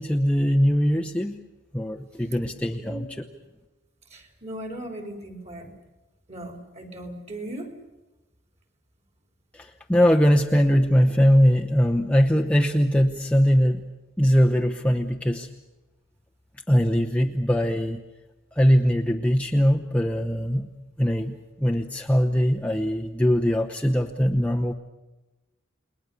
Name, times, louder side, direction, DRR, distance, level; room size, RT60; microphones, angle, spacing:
voice 1, 0.0-1.4 1.7-3.1 9.5-13.8 14.2-15.5 16.7-18.0 18.6-20.7 21.0-21.3 21.6-24.7, equal, 5° left, 1 dB, 0.9 m, -21 dB
voice 2, 4.1-5.7 6.3-7.7, right 1 dB, 35° right, 4 dB, 3.7 m, -37 dB
29.5 x 21.0 x 6.9 m, 1.1 s
head